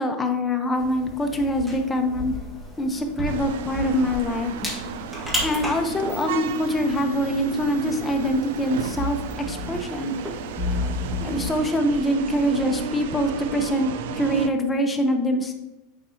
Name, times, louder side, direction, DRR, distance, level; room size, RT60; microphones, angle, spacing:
voice 1, 0.0-2.3 2.8-4.7 5.4-10.1 11.2-15.5, equal, 15° left, 4 dB, 0.8 m, -24 dB
sound 1, 0.7-11.6, left 2 dB, 10° right, 1.6 m, -33 dB
sound 2, 3.3-14.5, right 5 dB, 75° right, 0.5 m, -33 dB
9.1 x 4.0 x 2.8 m, 0.99 s
supercardioid pair, 140°, 0 cm